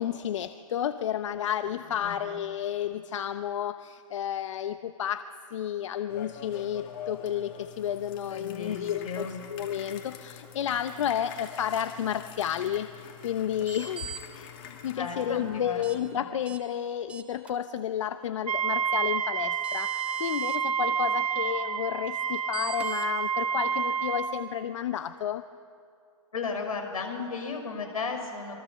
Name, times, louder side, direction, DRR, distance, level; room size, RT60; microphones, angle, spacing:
voice 1, 0.0-25.5, left 10 dB, 60° left, 11 dB, 0.8 m, -31 dB
sound 1, 6.1-16.2, left 8 dB, 40° left, 2.9 m, -46 dB
voice 2, 8.3-9.3 15.0-15.9 16.2-16.3 26.3-28.5, left 4 dB, 80° left, 5 dB, 5.8 m, -34 dB
sound 2, 13.6-14.2 15.8-16.0 16.4-16.6 17.1-17.5 19.2-19.3 19.6-20.6 22.5-23.1, right 5 dB, 5° right, 1.5 m, -41 dB
Wind instrument woodwind instrument, 18.5-24.4, right 7 dB, 80° right, 1.4 m, -29 dB
26.5 x 23.5 x 7.1 m, 2.5 s
hypercardioid pair, 140°, 18 cm